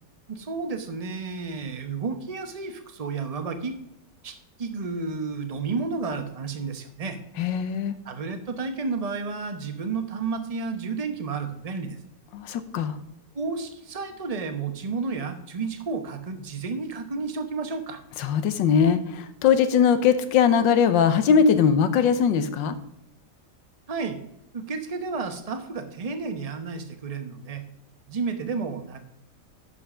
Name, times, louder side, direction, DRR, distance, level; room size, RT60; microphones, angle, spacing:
voice 1, 0.3-3.7 4.2-7.2 8.0-12.0 13.3-18.0 23.9-24.2 24.5-27.6 28.1-29.0, right 4 dB, 30° right, 7 dB, 0.6 m, -31 dB
voice 2, 7.4-7.9 12.3-13.0 18.2-22.8, left 7 dB, 90° left, 11 dB, 1.5 m, -21 dB
11.0 x 5.7 x 4.9 m, 0.81 s
omnidirectional pair, 1.9 m